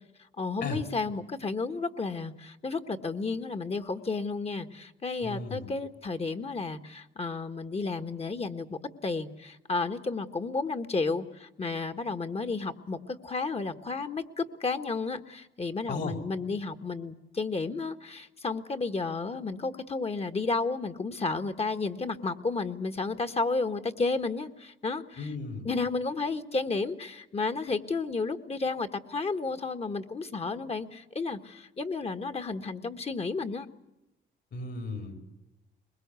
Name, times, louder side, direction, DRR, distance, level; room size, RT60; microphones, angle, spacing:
voice 1, 0.4-25.3 25.6-33.7, left 3 dB, 30° left, 9 dB, 1.5 m, -32 dB
voice 2, 5.2-5.7 15.9-16.2 25.2-25.7 34.5-35.2, left 4 dB, 60° left, 5 dB, 4.4 m, -35 dB
23.0 x 21.0 x 8.3 m, 0.94 s
cardioid pair, 90°, 20 cm